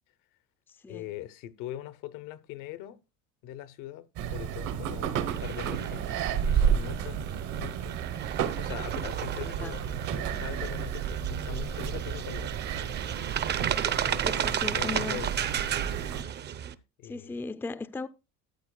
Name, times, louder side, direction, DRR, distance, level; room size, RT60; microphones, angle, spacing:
voice 1, 0.9-3.0 3.4-4.1 4.3-6.1 6.4-7.3 7.6-8.0 8.6-12.5 13.7-15.3 17.0-17.4, left 12 dB, 75° left, 0.9 m, -41 dB
sound 1, 4.2-16.2, right 8 dB, 65° right, 1.2 m, -32 dB
sound 2, 5.3-16.7, right 9 dB, 35° right, 0.6 m, -34 dB
voice 2, 9.4-9.7 10.3-10.5 14.2-15.2 17.1-18.1, left 3 dB, 5° left, 0.4 m, -37 dB
13.0 x 8.2 x 2.2 m
cardioid pair, 115°, 32 cm